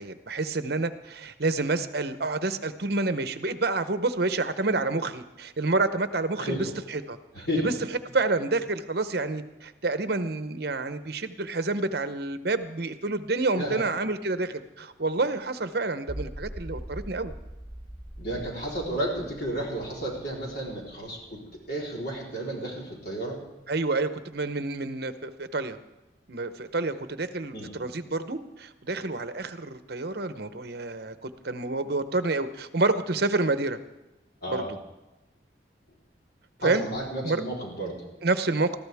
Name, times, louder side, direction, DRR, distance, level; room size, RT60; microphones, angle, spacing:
voice 1, 0.0-7.7 8.1-17.3 23.7-25.8 26.3-33.8 34.5-34.8 36.6-36.9 37.2-37.4 38.2-38.8, right 3 dB, 55° right, 10 dB, 0.8 m, -28 dB
voice 2, 7.3-7.7 13.5-13.8 18.2-23.4 27.5-27.7 34.4-34.7 36.6-38.1 38.6-38.7, right 1 dB, 55° left, -3 dB, 3.8 m, -32 dB
sound 1, 16.1-22.2, right 1 dB, 10° left, 2.3 m, -42 dB
21.0 x 14.5 x 3.5 m, 1.0 s
head